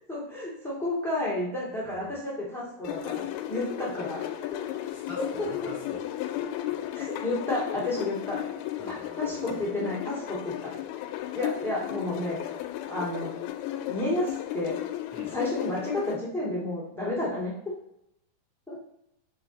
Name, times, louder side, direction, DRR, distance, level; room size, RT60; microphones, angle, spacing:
voice 1, 0.1-4.2 5.2-5.3 6.9-8.4 9.2-10.7 11.3-12.4 12.9-13.3 13.9-14.8 15.3-17.5 18.7-18.8, left 1 dB, 5° left, -7 dB, 0.4 m, -31 dB
voice 2, 1.8-2.1 4.8-6.0 8.8-9.6 15.1-15.3, equal, 75° right, -9 dB, 0.9 m, -46 dB
sound 1, 2.8-16.2, left 12 dB, 80° left, 2.3 m, -34 dB
5.1 x 4.8 x 4.0 m, 0.81 s
omnidirectional pair, 4.6 m